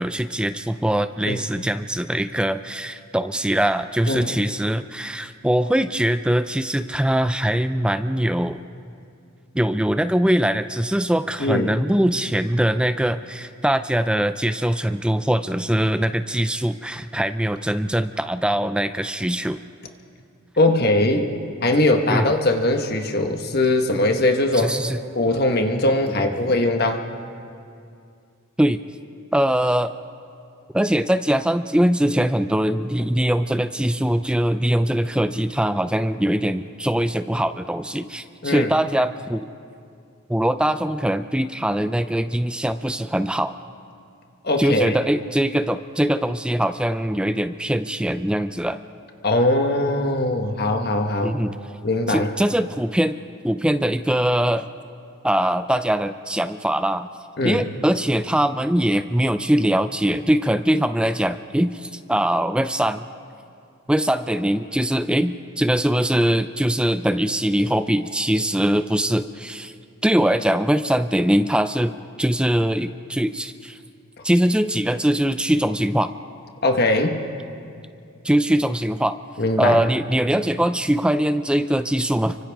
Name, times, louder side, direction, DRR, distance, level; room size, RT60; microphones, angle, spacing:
voice 1, 0.0-8.6 9.5-19.6 22.1-22.3 24.6-25.0 26.3-26.5 28.6-28.8 29.3-29.9 30.7-39.5 40.3-43.6 44.6-48.8 51.2-51.5 52.1-53.2 53.4-54.7 55.2-57.1 57.4-63.1 63.9-69.7 70.0-71.9 72.2-73.8 74.2-76.1 78.2-79.2 79.6-82.4, right 1 dB, 5° right, 10 dB, 0.4 m, -22 dB
voice 2, 20.6-21.3 21.6-24.8 25.1-27.0 38.4-38.7 44.4-45.0 49.2-51.4 51.8-52.3 57.4-57.7 76.6-77.2 79.4-79.8, left 2 dB, 45° left, 4 dB, 1.3 m, -20 dB
29.5 x 24.5 x 3.6 m, 2.4 s
head